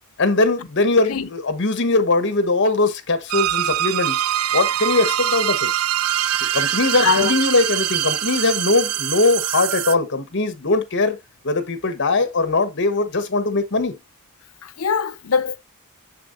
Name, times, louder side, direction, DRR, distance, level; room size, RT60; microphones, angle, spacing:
voice 1, 0.2-4.2 4.5-5.7 6.5-11.2 11.4-14.0, left 3 dB, 55° left, 1.1 m, -20 dB
sound 1, 3.3-9.9, right 11 dB, 75° right, 0.4 m, -23 dB
voice 2, 7.0-7.3 14.6-15.6, left 5 dB, 75° left, 0.6 m, -21 dB
6.9 x 6.5 x 2.5 m
head